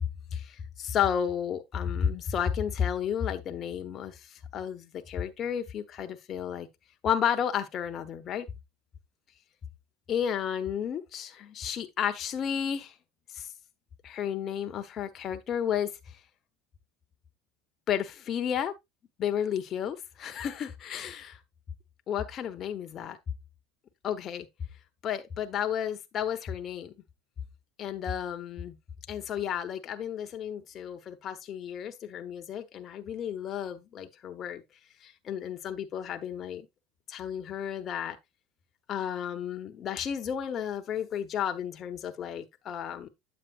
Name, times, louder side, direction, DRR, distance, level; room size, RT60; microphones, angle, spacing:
voice 1, 0.3-6.7 7.0-8.5 10.1-12.9 13.3-13.5 14.0-15.9 17.9-18.7 19.2-21.4 22.1-23.2 24.0-24.5 25.0-26.9 27.8-28.8 29.1-34.6 35.0-36.7 37.1-38.2 38.9-43.1, left 8 dB, 40° left, 1.1 m, -32 dB
9.2 x 7.3 x 2.5 m
supercardioid pair, 120°, 0 cm